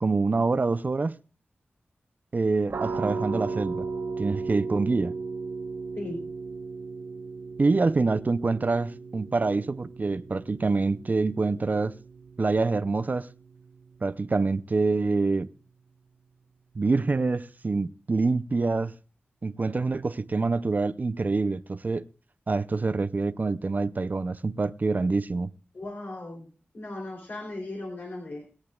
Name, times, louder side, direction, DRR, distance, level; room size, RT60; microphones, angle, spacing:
voice 1, 0.0-1.2 2.3-3.9 4.2-5.1 7.6-11.9 12.4-13.3 14.0-15.5 16.8-19.0 19.4-22.0 22.5-25.5, right 3 dB, 45° right, 0.5 m, -26 dB
sound 1, 2.7-14.2, right 4 dB, 85° right, 1.2 m, -36 dB
voice 2, 6.0-6.3 25.7-26.5 26.7-28.4, left 2 dB, 60° left, 3.2 m, -37 dB
21.5 x 9.8 x 2.4 m
wide cardioid pair, 70°, 4 cm